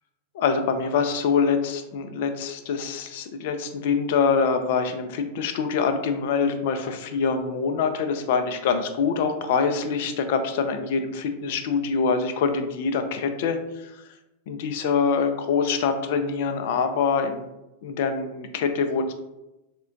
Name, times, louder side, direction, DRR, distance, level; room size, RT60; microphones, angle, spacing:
voice 1, 0.3-13.9 14.5-17.4 17.8-19.1, left 5 dB, 60° left, 7 dB, 0.4 m, -25 dB
3.6 x 2.1 x 2.5 m, 0.96 s
hypercardioid pair, 95°, 0 cm